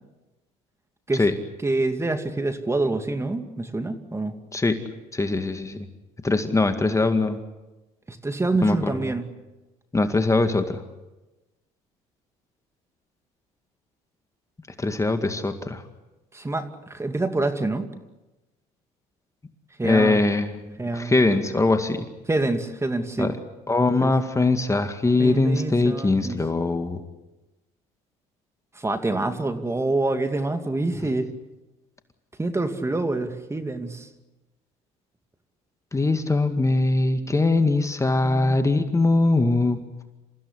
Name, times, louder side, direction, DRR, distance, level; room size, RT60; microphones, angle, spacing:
voice 1, 1.6-4.3 8.1-9.3 16.3-17.9 19.8-20.2 20.8-21.1 22.3-23.3 24.0-24.1 25.2-26.4 28.7-31.3 32.4-34.1 38.2-38.6, right 2 dB, 15° right, 8 dB, 2.4 m, -26 dB
voice 2, 5.1-5.8 6.2-7.4 8.6-9.1 9.9-10.8 14.8-15.8 19.8-22.1 23.2-23.3 23.7-27.0 35.9-39.8, left 2 dB, 20° left, 8 dB, 2.1 m, -22 dB
28.0 x 15.5 x 9.8 m, 1.1 s
supercardioid pair, 75°, 16 cm